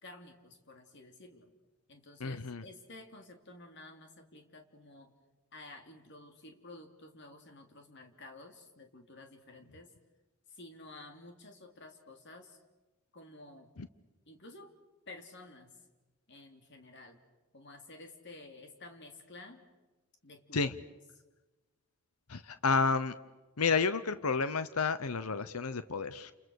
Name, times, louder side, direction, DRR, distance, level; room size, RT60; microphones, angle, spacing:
voice 1, 0.0-1.5 1.9-5.1 5.5-9.9 10.5-12.6 13.1-13.7 14.3-14.7 15.1-15.7 16.3-17.2 17.5-19.6 20.2-20.6, left 2 dB, 55° left, 5 dB, 3.2 m, -52 dB
voice 2, 2.2-2.6 13.8-13.9 20.5-20.7 22.3-23.1 23.6-26.3, left 4 dB, 90° left, 13 dB, 0.9 m, -31 dB
29.5 x 29.5 x 6.5 m, 1.1 s
head